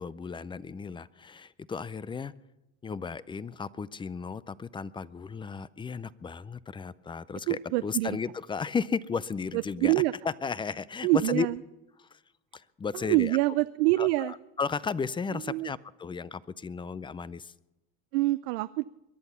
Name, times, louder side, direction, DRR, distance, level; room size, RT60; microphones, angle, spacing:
voice 1, 0.0-2.3 2.8-9.9 10.2-11.5 12.0-12.2 12.5-13.4 14.0-17.5, left 5 dB, 15° left, 19 dB, 0.5 m, -34 dB
voice 2, 7.5-8.1 9.5-10.1 11.0-11.6 13.1-14.3 15.5-15.7 18.1-18.8, right 20 dB, 85° right, 14 dB, 0.5 m, -25 dB
22.5 x 10.5 x 5.6 m, 0.95 s
supercardioid pair, 110°, 31 cm